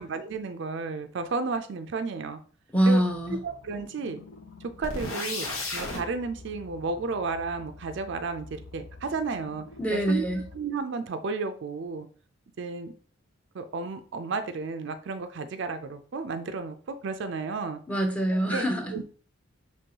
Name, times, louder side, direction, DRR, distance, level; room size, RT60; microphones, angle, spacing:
voice 1, 0.0-2.4 2.9-3.0 3.4-4.2 4.8-9.6 9.9-10.2 10.5-12.1 12.6-12.9 13.5-17.8 18.5-18.6 18.9-19.0, right 4 dB, 60° right, 8 dB, 0.4 m, -32 dB
voice 2, 2.7-3.4 9.8-10.5 17.9-18.9, right 1 dB, 5° left, 2 dB, 0.6 m, -24 dB
sound 1, 3.0-10.6, left 3 dB, 65° left, 0.7 m, -49 dB
sound 2, 4.8-6.0, left 2 dB, 80° left, 1.3 m, -32 dB
5.2 x 3.1 x 2.8 m, 0.41 s
head